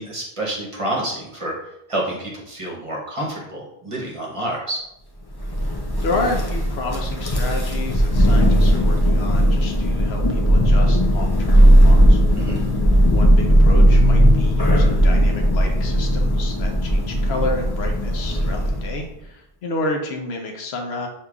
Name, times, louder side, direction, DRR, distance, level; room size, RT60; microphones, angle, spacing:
voice 1, 0.0-1.6 1.9-4.8 12.3-12.6, right 1 dB, 35° right, -3 dB, 0.9 m, -28 dB
Thunder, 5.4-19.0, equal, 35° left, 0.4 m, -17 dB
voice 2, 5.6-12.5 13.1-21.1, left 2 dB, 80° left, 2 dB, 1.0 m, -30 dB
6.5 x 2.8 x 2.3 m, 0.85 s
omnidirectional pair, 1.0 m